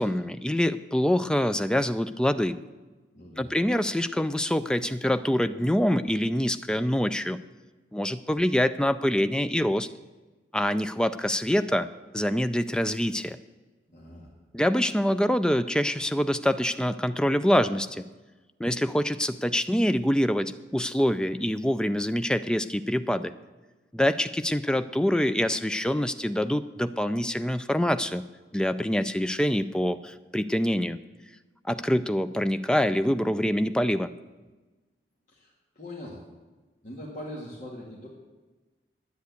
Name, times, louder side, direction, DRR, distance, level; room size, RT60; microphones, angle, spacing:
voice 1, 0.0-2.6 3.4-7.4 7.9-9.9 10.5-11.9 12.1-13.4 14.5-18.0 18.6-23.3 23.9-28.2 28.5-31.0 31.6-34.1, equal, 5° left, 11 dB, 0.3 m, -25 dB
voice 2, 3.1-3.5 13.9-14.3 35.3-36.3 36.8-38.1, left 1 dB, 45° left, -5 dB, 2.0 m, -41 dB
10.5 x 9.4 x 8.1 m, 1.2 s
head